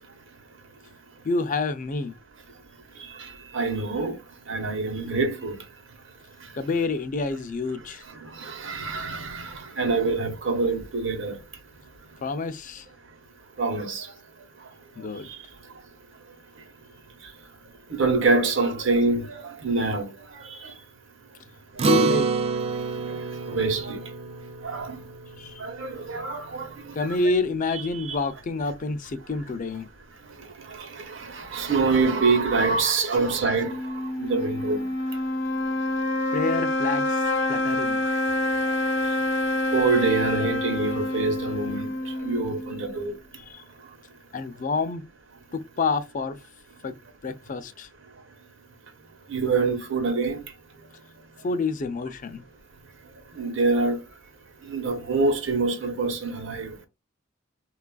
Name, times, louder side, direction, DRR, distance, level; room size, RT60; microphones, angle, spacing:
voice 1, 1.2-2.2 6.6-8.0 12.2-12.8 15.0-15.3 21.8-22.3 25.4-25.6 26.9-29.9 36.3-38.0 43.5-43.6 44.3-45.1 45.5-46.4 46.8-46.9 47.2-47.9 51.4-52.4, left 3 dB, 40° left, 0.4 m, -28 dB
voice 2, 3.2-4.2 4.5-5.6 8.2-11.4 13.6-14.1 15.2-15.4 17.9-20.1 20.3-20.7 23.1-23.2 23.5-24.0 24.6-25.0 25.6-26.7 27.0-27.2 27.9-28.2 30.7-33.8 34.2-34.8 39.7-41.9 42.2-43.2 49.3-50.4 53.3-54.0 54.7-56.7, right 3 dB, 65° right, 0.9 m, -25 dB
Acoustic guitar, 21.8-26.5, right 5 dB, 30° right, 0.3 m, -28 dB
sound 1, 33.6-43.0, left 1 dB, 60° left, 0.8 m, -27 dB
4.0 x 2.4 x 2.2 m
head